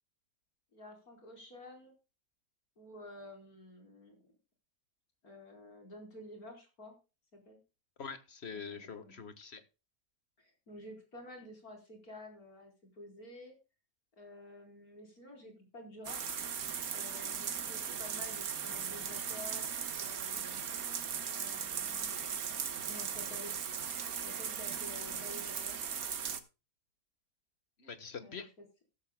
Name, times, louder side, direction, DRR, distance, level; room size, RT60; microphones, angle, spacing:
voice 1, 0.7-1.9 2.8-4.2 5.2-7.0 7.3-7.6 8.5-9.3 10.4-13.5 14.1-16.2 16.9-19.7 19.9-20.6 21.3-22.4 22.8-23.6 24.2-25.8 28.2-28.7, left 1 dB, 65° left, 2 dB, 5.0 m, -51 dB
voice 2, 8.0-9.6 27.8-28.5, left 5 dB, 45° left, 11 dB, 1.7 m, -44 dB
sound 1, 16.0-26.4, right 7 dB, 65° right, 1.7 m, -38 dB
15.5 x 13.5 x 2.2 m, 0.30 s
omnidirectional pair, 1.7 m